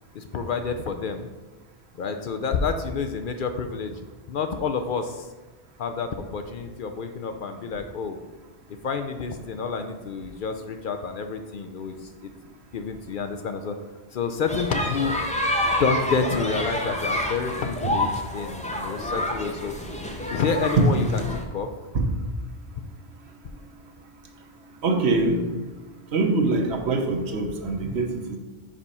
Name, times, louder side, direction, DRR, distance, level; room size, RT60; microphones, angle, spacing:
voice 1, 0.1-1.3 2.0-4.0 4.3-5.3 5.8-8.2 8.8-12.3 12.7-13.8 14.1-15.2 15.8-19.8 20.3-21.7, left 5 dB, 60° left, 6 dB, 0.6 m, -28 dB
sound 1, 14.5-21.4, left 1 dB, 10° left, 0.6 m, -28 dB
voice 2, 24.8-25.5 26.1-28.4, right 3 dB, 75° right, 3 dB, 1.1 m, -24 dB
5.0 x 4.9 x 5.4 m, 1.2 s
omnidirectional pair, 1.1 m